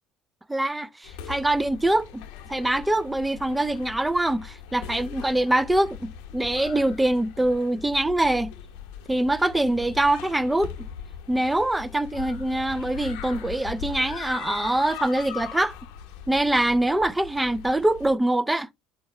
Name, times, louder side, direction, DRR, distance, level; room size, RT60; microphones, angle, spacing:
voice 1, 0.5-2.2 2.5-8.5 9.1-10.9 11.3-15.7 16.3-18.7, right 1 dB, 10° right, 0.4 m, -24 dB
sound 1, 1.0-18.2, left 8 dB, 85° left, 0.8 m, -40 dB
4.5 x 2.8 x 4.2 m
supercardioid pair, 95°, 0 cm